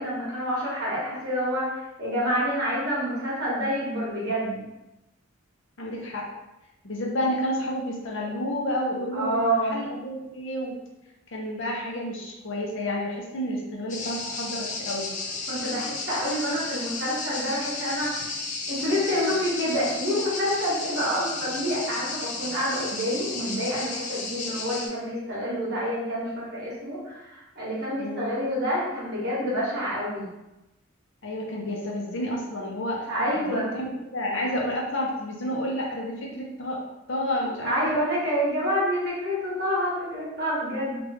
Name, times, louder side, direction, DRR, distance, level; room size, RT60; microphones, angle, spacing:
voice 1, 0.0-4.6 9.1-9.7 15.5-18.2 18.7-30.2 33.1-33.7 37.6-41.0, equal, 55° right, -6 dB, 1.3 m, -28 dB
voice 2, 5.8-6.2 6.8-10.8 11.3-15.1 28.0-28.3 31.2-33.1 33.5-36.8 37.1-38.0, left 1 dB, 65° left, -1 dB, 0.8 m, -30 dB
Cicadas Street Atmos and Apartment Voices Murano, 13.9-24.9, left 3 dB, 40° left, 0.5 m, -33 dB
3.0 x 2.5 x 3.4 m, 0.98 s
head